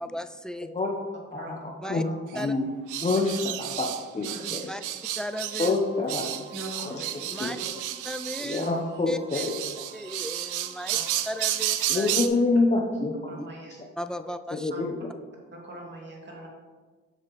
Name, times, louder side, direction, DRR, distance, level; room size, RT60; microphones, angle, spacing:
voice 1, 0.0-0.7 1.8-2.0 2.3-2.5 4.7-4.8 5.2-5.8 7.3-7.6 8.0-8.7 9.1-9.4 9.9-11.0 11.3-12.1 13.4-13.5 14.0-14.7, equal, ahead, 10 dB, 0.3 m, -35 dB
voice 2, 1.3-2.1 2.3-2.7 3.0-4.7 5.6-6.4 6.8-7.0 7.4-7.5 8.4-9.5 11.9-13.4 14.5-15.1, left 3 dB, 25° left, -1 dB, 0.9 m, -27 dB
sound 1, 2.3-2.4 2.9-5.8 6.1-8.7 9.3-12.3, right 12 dB, 85° right, 0.5 m, -31 dB
voice 3, 4.3-4.8 6.5-7.5 10.9-11.0 13.3-13.7 14.7-14.8 15.5-16.5, right 1 dB, 35° right, -2 dB, 2.4 m, -42 dB
sound 2, 5.0-11.8, right 2 dB, 55° right, 1.8 m, -51 dB
7.6 x 6.5 x 3.1 m, 1.4 s
cardioid pair, 90°, 30 cm